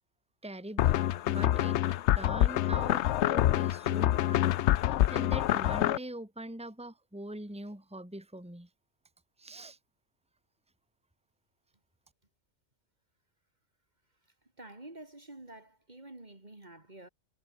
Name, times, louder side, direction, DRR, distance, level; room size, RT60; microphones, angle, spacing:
voice 1, 0.4-4.6 4.8-8.7 9.4-9.8, right 1 dB, 5° right, 2.4 m, -43 dB
sound 1, 0.8-6.0, left 13 dB, 75° left, 0.9 m, -26 dB
voice 2, 14.6-17.1, right 2 dB, 35° right, 3.0 m, -49 dB
omnidirectional pair, 1.3 m